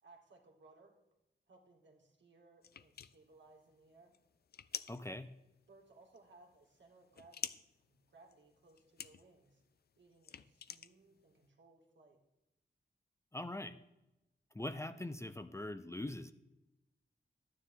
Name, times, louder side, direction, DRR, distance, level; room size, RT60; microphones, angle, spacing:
voice 1, 0.0-1.0 1.5-4.1 5.7-7.4 7.8-9.6 10.0-12.2, right 3 dB, 80° right, 0 dB, 2.3 m, -63 dB
sound 1, 2.6-11.5, left 8 dB, 60° left, 0.4 m, -49 dB
voice 2, 4.9-5.3 13.3-13.8 14.5-16.3, left 1 dB, 15° left, 11 dB, 0.6 m, -42 dB
11.5 x 9.6 x 3.7 m, 0.93 s
wide cardioid pair, 75°, 18 cm